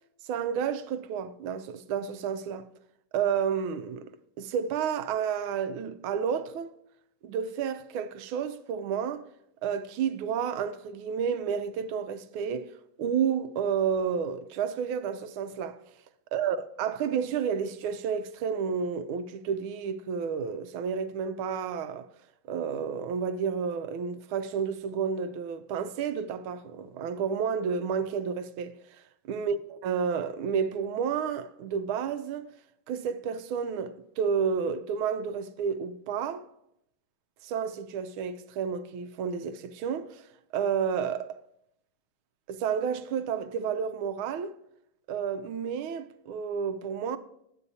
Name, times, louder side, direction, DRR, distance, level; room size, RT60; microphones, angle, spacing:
voice 1, 0.2-2.7 3.1-4.1 4.4-6.7 7.2-9.2 9.6-12.7 13.0-15.8 16.3-22.1 22.5-29.6 29.8-32.5 32.9-36.5 37.4-40.3 40.5-41.4 42.5-44.5 45.1-47.2, right 7 dB, 85° right, 1.4 m, -31 dB
9.8 x 8.4 x 2.7 m
omnidirectional pair, 2.3 m